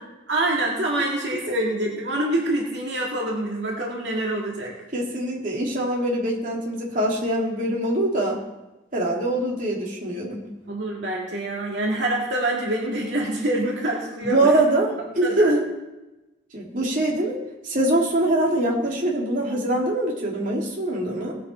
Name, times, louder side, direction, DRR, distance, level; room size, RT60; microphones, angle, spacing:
voice 1, 0.3-4.8 10.7-14.6 15.2-15.5, right 1 dB, 75° right, -2 dB, 2.2 m, -26 dB
voice 2, 4.9-8.4 8.9-10.4 14.2-15.6 16.5-17.4 17.6-21.4, right 1 dB, 50° right, -3 dB, 2.9 m, -23 dB
19.0 x 8.4 x 4.5 m, 1.0 s
head